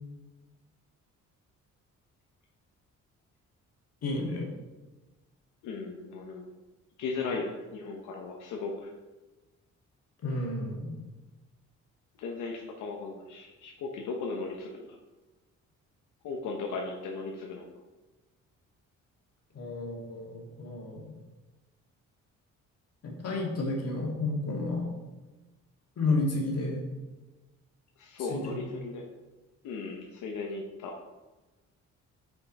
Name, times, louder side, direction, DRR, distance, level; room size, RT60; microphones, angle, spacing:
voice 1, 4.0-4.5 10.2-11.0 19.5-21.2 23.0-24.9 26.0-26.8 28.2-28.6, left 2 dB, 55° left, -1 dB, 2.0 m, -31 dB
voice 2, 5.6-6.5 7.0-8.9 12.2-14.8 16.2-17.7 28.0-29.0 29.6-30.9, left 4 dB, 85° left, 0 dB, 0.9 m, -36 dB
5.7 x 5.7 x 4.1 m, 1.2 s
cardioid pair, 90°, 30 cm